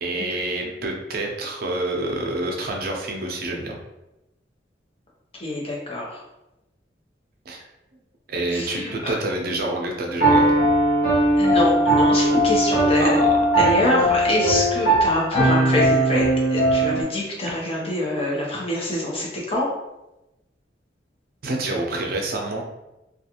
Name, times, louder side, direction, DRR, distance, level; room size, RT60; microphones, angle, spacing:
voice 1, 0.0-3.8 7.5-7.6 8.3-10.6 13.0-13.3 16.8-16.9 21.4-22.6, right 2 dB, 55° right, 1 dB, 0.5 m, -27 dB
voice 2, 5.4-6.2 8.5-9.2 11.4-13.1 13.6-19.7, left 1 dB, 35° left, -4 dB, 0.7 m, -25 dB
Piano, 10.2-17.0, right 1 dB, 75° left, 1.1 m, -19 dB
2.4 x 2.4 x 2.8 m, 0.96 s
head